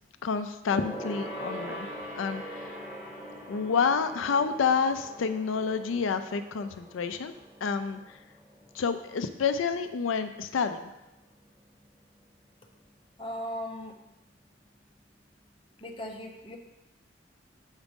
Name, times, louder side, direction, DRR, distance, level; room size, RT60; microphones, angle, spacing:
voice 1, 0.2-1.9 2.2-2.9 3.5-7.3 7.6-8.2 8.7-10.9, left 5 dB, 90° left, 9 dB, 0.4 m, -29 dB
Gong, 0.7-10.4 10.7-11.0 11.3-11.4, equal, 30° right, 3.1 m, -43 dB
voice 2, 13.2-13.9 15.8-16.6, left 1 dB, 25° left, 1 dB, 0.9 m, -37 dB
7.2 x 5.1 x 5.2 m, 0.97 s
head